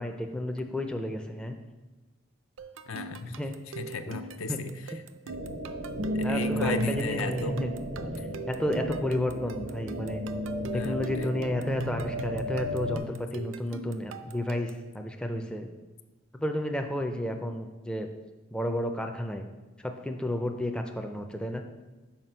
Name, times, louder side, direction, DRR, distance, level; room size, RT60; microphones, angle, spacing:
voice 1, 0.0-1.6 3.2-3.5 4.1-4.2 4.5-4.6 4.9-5.0 6.2-7.7 8.0-8.1 8.5-10.2 10.7-15.7 16.3-18.1 18.5-19.5 19.8-21.6, left 1 dB, 5° left, 4 dB, 0.4 m, -32 dB
sound 1, 2.6-14.9, right 4 dB, 65° right, 0.4 m, -43 dB
voice 2, 2.9-3.4 3.8-4.7 6.1-7.6 10.7-11.3, left 3 dB, 75° left, 9 dB, 0.5 m, -34 dB
sound 2, 5.3-13.0, equal, 90° right, 1.0 m, -33 dB
5.8 x 4.7 x 5.5 m, 1.2 s
head